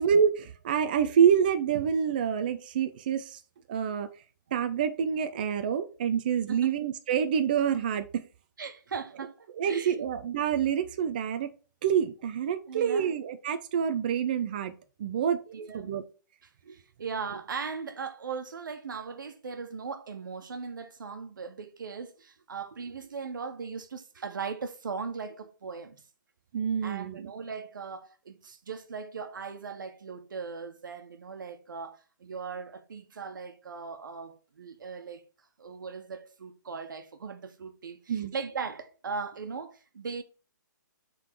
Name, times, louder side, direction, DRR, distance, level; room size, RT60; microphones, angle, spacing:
voice 1, 0.0-3.4 3.7-4.1 4.5-8.3 9.5-11.5 11.8-14.7 15.0-15.4 15.7-16.0 26.5-27.3 38.1-38.3, right 8 dB, 25° right, 0.3 m, -27 dB
voice 2, 8.6-10.1 12.7-13.1 15.5-15.9 16.6-26.0 26.8-35.2 35.6-40.2, right 5 dB, 90° right, 1.1 m, -39 dB
5.9 x 3.7 x 4.5 m
hypercardioid pair, 175°, 10 cm